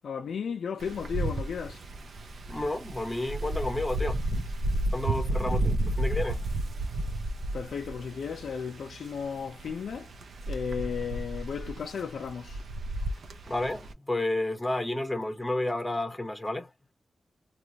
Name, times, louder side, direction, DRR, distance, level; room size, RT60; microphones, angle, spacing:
voice 1, 0.0-1.8 7.5-10.1 10.5-12.6, left 6 dB, 85° left, 0.5 m, -34 dB
Wind, 0.8-13.9, right 1 dB, 70° right, 0.7 m, -32 dB
voice 2, 2.5-4.2 4.9-6.4 13.5-16.7, left 1 dB, 10° left, 0.9 m, -31 dB
2.9 x 2.5 x 2.9 m
wide cardioid pair, 125°, 0 cm